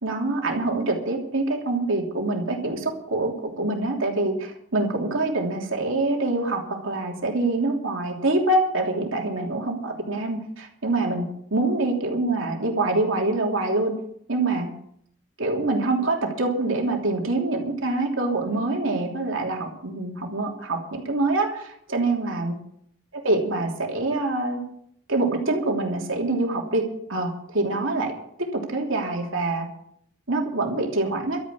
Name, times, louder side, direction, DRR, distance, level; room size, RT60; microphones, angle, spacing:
voice 1, 0.0-13.9 14.3-14.7 15.4-22.5 23.1-24.6 25.1-28.1 28.4-29.7 30.3-31.4, right 2 dB, 90° right, 1 dB, 3.1 m, -25 dB
13.0 x 9.8 x 8.4 m, 0.68 s
head